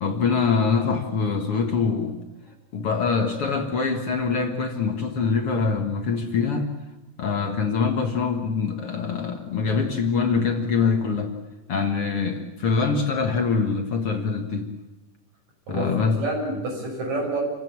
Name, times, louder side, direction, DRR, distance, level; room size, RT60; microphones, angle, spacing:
voice 1, 0.0-2.2 2.7-6.7 7.2-11.3 11.7-14.7 15.7-16.2, left 5 dB, 50° left, 4 dB, 2.2 m, -24 dB
voice 2, 15.7-17.4, right 2 dB, 65° right, 0 dB, 7.8 m, -28 dB
28.5 x 16.0 x 8.8 m, 1.1 s
omnidirectional pair, 3.5 m